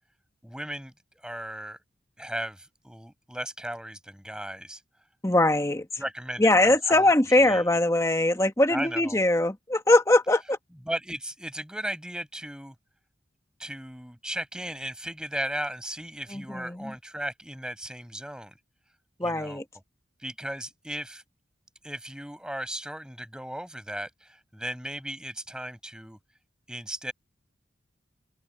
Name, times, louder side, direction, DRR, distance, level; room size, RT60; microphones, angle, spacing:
voice 1, 0.4-1.8 2.2-4.8 6.0-7.0 7.5-7.6 8.7-9.2 10.9-12.8 13.6-18.6 19.2-19.6 20.2-21.2 21.8-26.2 26.7-27.1, right 1 dB, 5° right, 5.2 m, -36 dB
voice 2, 5.2-5.9 6.4-10.6 16.3-16.9 19.2-19.6, left 1 dB, 15° left, 1.3 m, -22 dB
open air
head